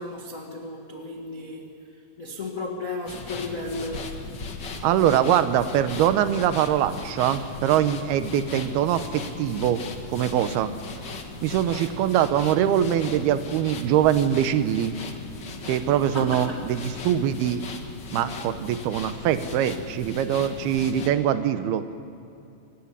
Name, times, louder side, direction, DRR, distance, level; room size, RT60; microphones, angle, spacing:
voice 1, 0.0-1.7 2.2-4.1 11.8-12.0 16.0-16.7, left 2 dB, 85° left, 1 dB, 0.7 m, -34 dB
sound 1, 3.0-21.1, left 3 dB, 50° left, 1.3 m, -38 dB
voice 2, 4.8-9.8 10.1-10.7 11.4-15.0 15.7-17.6 18.1-21.8, right 10 dB, 80° right, 11 dB, 2.8 m, -23 dB
26.0 x 16.5 x 9.9 m, 2.6 s
omnidirectional pair, 4.6 m